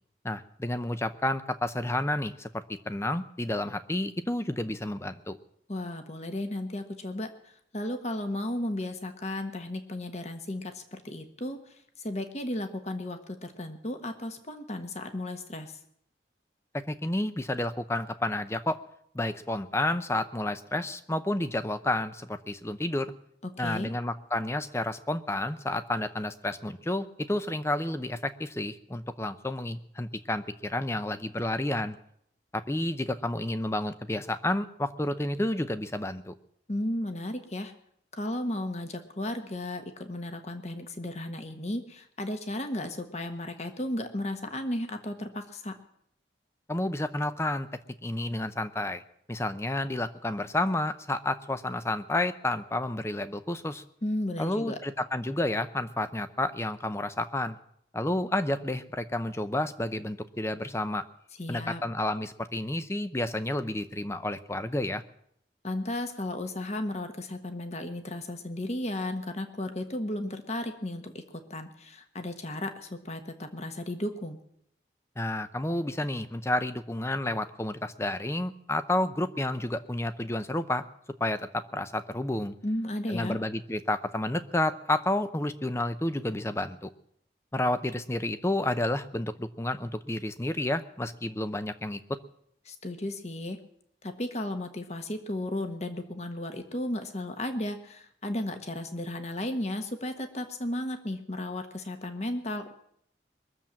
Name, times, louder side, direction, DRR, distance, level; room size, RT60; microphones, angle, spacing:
voice 1, 0.2-2.5 2.9-5.4 16.9-18.8 19.1-23.1 23.6-32.0 32.5-36.3 46.7-47.7 48.0-49.0 49.3-53.8 54.4-57.6 57.9-61.0 61.5-65.0 75.2-80.8 81.2-82.5 83.1-86.9 87.5-92.0, left 1 dB, 15° left, 11 dB, 0.7 m, -30 dB
voice 2, 5.7-15.8 23.4-23.9 36.7-37.7 38.1-45.7 54.0-54.8 61.4-61.8 65.6-74.4 82.6-83.4 92.6-93.6 94.0-102.7, left 1 dB, 40° left, 6 dB, 1.3 m, -34 dB
22.0 x 7.4 x 7.4 m, 0.72 s
head